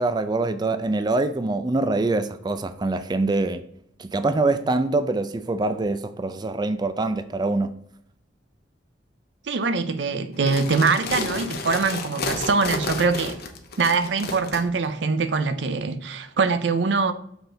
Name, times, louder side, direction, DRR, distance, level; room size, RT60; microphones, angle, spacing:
voice 1, 0.0-3.6 4.0-7.7, right 2 dB, 25° right, 0.4 m, -24 dB
voice 2, 9.5-13.4 13.8-17.1, right 4 dB, 80° right, 0.6 m, -23 dB
sound 1, 10.3-14.6, left 3 dB, 60° left, 1.0 m, -31 dB
7.0 x 4.2 x 3.8 m
head